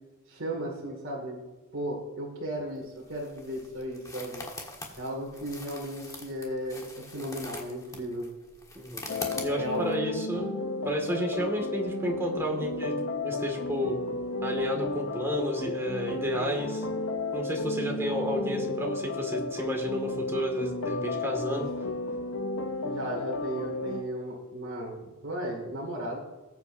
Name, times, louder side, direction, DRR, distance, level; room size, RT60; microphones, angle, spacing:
voice 1, 0.3-1.4 1.7-4.4 5.0-8.3 9.5-9.9 21.5-21.7 22.8-26.2, equal, 60° right, -4 dB, 2.4 m, -35 dB
sound 1, 2.8-9.9, left 2 dB, 15° left, 1.5 m, -43 dB
sound 2, 9.1-24.0, left 2 dB, 65° left, 0.9 m, -33 dB
voice 2, 9.4-10.5 10.9-13.0 13.2-14.0 14.4-16.9 17.3-21.7, equal, 10° right, 0 dB, 2.0 m, -31 dB
20.0 x 8.2 x 2.7 m, 1.2 s
head